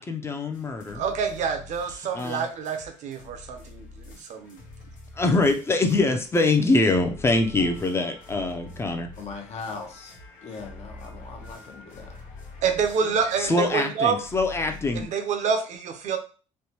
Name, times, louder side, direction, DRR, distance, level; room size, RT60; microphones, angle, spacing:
voice 1, 0.0-1.0 2.1-2.4 5.1-9.1 13.4-15.1, left 2 dB, 20° left, 5 dB, 0.5 m, -24 dB
sound 1, 0.5-15.0, left 3 dB, 85° left, 1.0 m, -46 dB
voice 2, 0.9-4.6 12.6-14.2 14.9-16.2, right 6 dB, 65° right, 6 dB, 0.5 m, -27 dB
voice 3, 9.2-12.2, left 4 dB, 55° left, 4 dB, 0.7 m, -39 dB
3.2 x 2.1 x 2.9 m, 0.37 s
cardioid pair, 105°, 13 cm